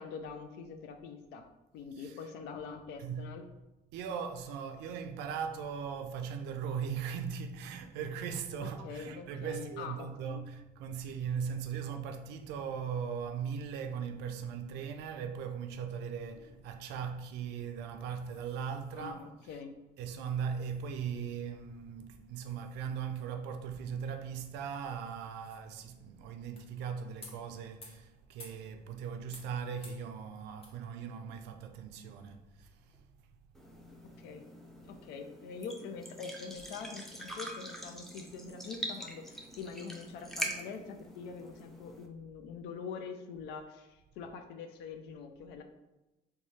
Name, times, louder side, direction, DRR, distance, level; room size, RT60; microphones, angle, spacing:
voice 1, 0.0-1.4 1.7-3.4 8.6-10.4 18.9-19.2 19.5-19.7 34.2-34.5 34.9-45.6, left 5 dB, 90° left, 0.4 m, -44 dB
voice 2, 1.9-2.3 3.0-3.4 3.9-19.6 20.0-33.0 39.7-39.8, right 7 dB, 90° right, 0.4 m, -39 dB
sound 1, 16.1-33.0, left 2 dB, 35° left, 1.0 m, -60 dB
sound 2, 33.5-42.1, right 1 dB, ahead, 0.5 m, -44 dB
3.1 x 2.3 x 4.1 m
cardioid pair, 110°, 17 cm